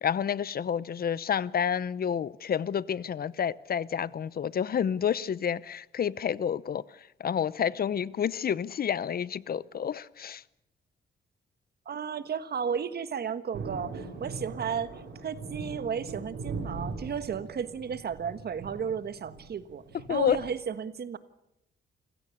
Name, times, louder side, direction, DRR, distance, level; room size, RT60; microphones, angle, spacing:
voice 1, 0.0-6.8 7.2-10.4 20.1-20.4, left 8 dB, 55° left, 0.8 m, -29 dB
voice 2, 11.8-19.8 20.1-21.2, right 7 dB, 60° right, 1.4 m, -34 dB
Thunder, 13.5-20.5, right 4 dB, 85° right, 5.7 m, -40 dB
27.5 x 16.5 x 8.5 m
cardioid pair, 75°, 19 cm